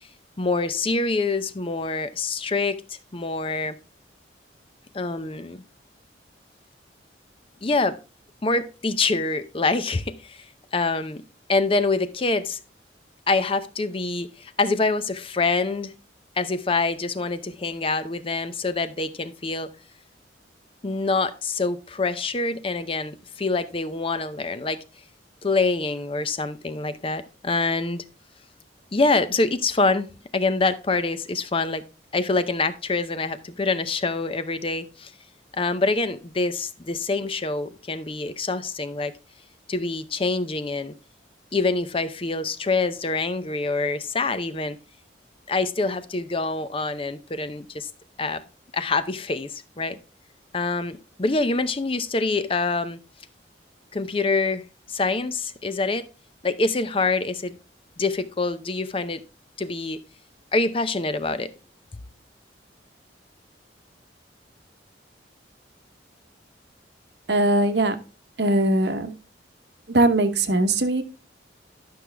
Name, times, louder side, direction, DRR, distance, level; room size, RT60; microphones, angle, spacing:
voice 1, 0.4-3.7 4.9-5.6 7.6-8.0 8.4-11.2 11.5-12.6 13.3-15.9 16.4-19.7 20.8-24.8 25.4-28.1 28.9-30.1 30.3-31.8 32.1-35.1 35.5-39.1 39.7-40.9 41.5-44.8 45.5-47.9 48.2-48.4 48.7-50.0 50.5-53.0 53.9-54.6 54.9-56.1 56.4-57.6 58.0-59.2 59.6-60.0 60.5-61.5, left 3 dB, 30° left, 0.6 m, -25 dB
voice 2, 67.3-68.0 68.4-69.1 69.9-71.0, right 1 dB, 65° right, 1.0 m, -20 dB
11.5 x 6.1 x 3.3 m
head